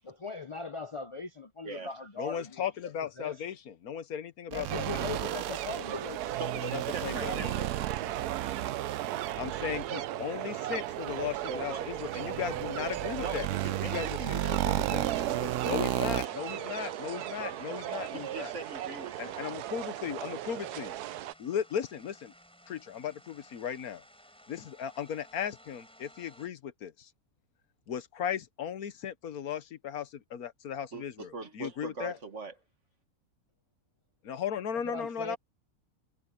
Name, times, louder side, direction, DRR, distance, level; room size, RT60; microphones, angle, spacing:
voice 1, 0.0-2.7 3.2-3.4 4.5-6.4 8.0-8.4 34.8-35.4, left 3 dB, 50° left, 0.3 m, -40 dB
voice 2, 2.2-4.9 6.7-7.5 9.4-15.1 15.6-18.5 19.2-20.9 21.4-22.3 22.7-24.0 24.5-27.1 27.9-32.2 34.2-35.4, left 8 dB, 75° left, 1.4 m, -36 dB
sound 1, 4.5-16.3, right 13 dB, 70° right, 0.8 m, -34 dB
sound 2, 4.7-21.3, right 13 dB, 85° right, 1.2 m, -37 dB
voice 3, 6.4-8.1 11.5-11.9 13.2-15.9 16.2-16.8 18.1-19.4 20.5-20.8 30.9-32.5, right 3 dB, 50° right, 2.1 m, -42 dB
sound 3, 9.8-26.5, equal, 5° left, 4.2 m, -58 dB
omnidirectional pair, 1.6 m